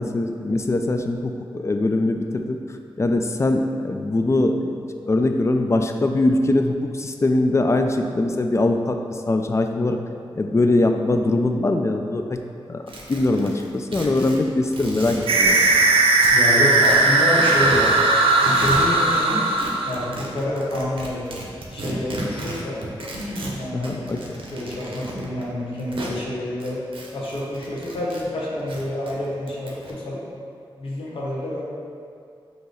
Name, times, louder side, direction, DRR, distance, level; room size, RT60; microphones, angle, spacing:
voice 1, 0.0-2.6 3.0-9.0 9.3-10.0 10.4-12.4 12.7-12.8 13.1-15.6 23.7-24.4, left 2 dB, 30° left, 5 dB, 0.4 m, -22 dB
sound 1, 12.9-16.4 16.7-18.1 18.3-19.2 19.6-26.2 26.6-28.2 28.5-29.9, right 1 dB, 70° right, 0.8 m, -34 dB
sound 2, 15.3-20.2, right 2 dB, 85° right, 0.4 m, -18 dB
voice 2, 16.3-17.9 18.4-19.4 19.8-21.3 21.7-22.8 23.1-23.9 24.5-26.8 27.1-30.2 30.8-31.6, left 1 dB, 75° left, -6 dB, 1.0 m, -27 dB
5.3 x 2.9 x 3.1 m, 2.4 s
cardioid pair, 55°, 9 cm